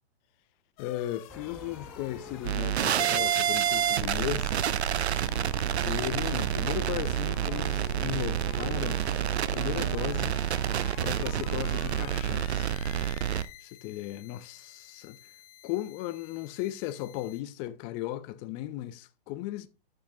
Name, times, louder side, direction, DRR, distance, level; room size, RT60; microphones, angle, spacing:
sound 1, 0.8-17.4, left 13 dB, 35° left, 0.7 m, -48 dB
voice 1, 0.8-4.6 5.8-9.0 9.5-10.4 11.0-12.7 13.6-15.2 15.6-19.7, left 14 dB, 15° left, 0.3 m, -36 dB
sound 2, 1.3-7.7, right 1 dB, 5° right, 0.8 m, -49 dB
sound 3, 2.4-13.4, right 10 dB, 90° right, 0.6 m, -28 dB
8.8 x 6.1 x 2.7 m
hypercardioid pair, 130°, 32 cm